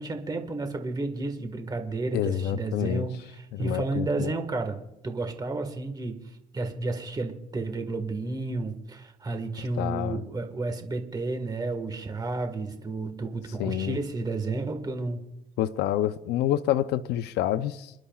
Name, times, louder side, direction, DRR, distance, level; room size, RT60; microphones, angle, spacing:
voice 1, 0.0-6.2 6.5-15.2, right 3 dB, 25° right, 1.6 m, -31 dB
voice 2, 2.1-3.1 3.5-4.3 9.8-10.2 13.6-14.0 15.6-17.9, left 12 dB, 80° left, 0.6 m, -28 dB
29.0 x 11.5 x 2.4 m
cardioid pair, 110°, 17 cm